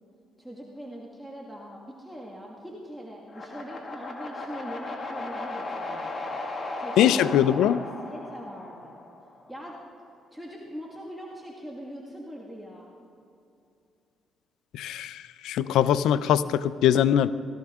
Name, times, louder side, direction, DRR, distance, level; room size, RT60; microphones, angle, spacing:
voice 1, 0.4-6.3 6.8-9.0 9.5-9.8 10.3-12.9, equal, 5° right, -2 dB, 1.7 m, -42 dB
sound 1, 3.3-9.4, left 2 dB, 35° left, 2.2 m, -36 dB
voice 2, 7.0-7.8 14.8-15.2 15.4-17.3, left 10 dB, 85° left, 15 dB, 0.4 m, -21 dB
18.0 x 14.0 x 3.6 m, 2.7 s
cardioid pair, 90°, 0 cm